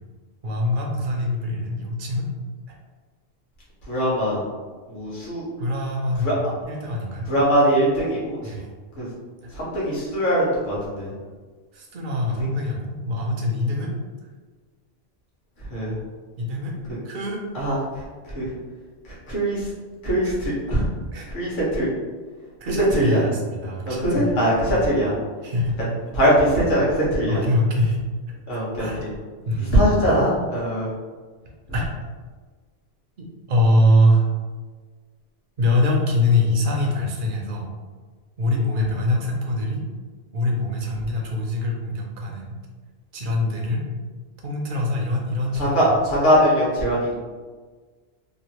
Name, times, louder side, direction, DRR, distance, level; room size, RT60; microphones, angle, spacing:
voice 1, 0.4-2.3 5.6-7.3 8.4-8.7 9.4-9.5 11.7-13.9 16.4-16.8 17.0-17.4 20.2-20.4 21.1-21.3 22.6-24.4 24.7-24.8 25.4-25.8 27.3-28.0 28.5-29.1 29.5-29.9 31.7-31.9 33.2-34.3 35.6-37.7 38.4-39.8 40.3-42.5 43.1-43.8 44.4-45.8, left 1 dB, 55° right, -1 dB, 0.7 m, -23 dB
voice 2, 3.9-4.4 4.9-5.5 6.2-6.3 7.3-8.4 9.0-9.1 9.5-11.1 15.7-15.9 17.5-17.8 18.3-18.5 19.3-19.6 20.0-20.8 21.3-21.9 22.9-23.2 23.8-25.1 26.1-27.4 28.5-29.1 29.7-30.9 45.6-47.1, equal, 45° left, -7 dB, 1.1 m, -21 dB
3.1 x 2.4 x 2.9 m, 1.4 s
omnidirectional pair, 1.2 m